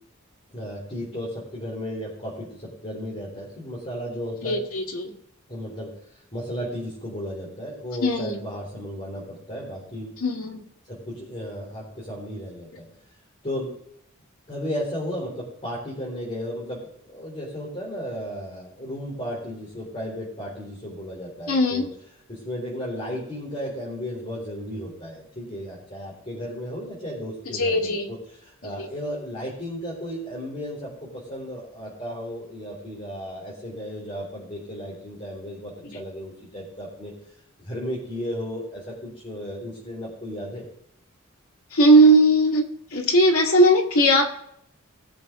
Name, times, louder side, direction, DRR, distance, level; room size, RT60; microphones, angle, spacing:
voice 1, 0.5-4.6 5.5-5.9 6.3-10.1 10.9-12.9 13.4-13.7 14.5-21.9 22.3-37.1 37.6-40.6, equal, 30° left, -7 dB, 3.7 m, -34 dB
voice 2, 4.4-5.1 8.0-8.4 10.2-10.6 21.5-21.9 27.5-28.1 28.8-28.9 41.7-42.6 42.9-44.3, right 1 dB, 80° left, 1 dB, 2.3 m, -18 dB
19.0 x 6.9 x 3.8 m, 0.71 s
head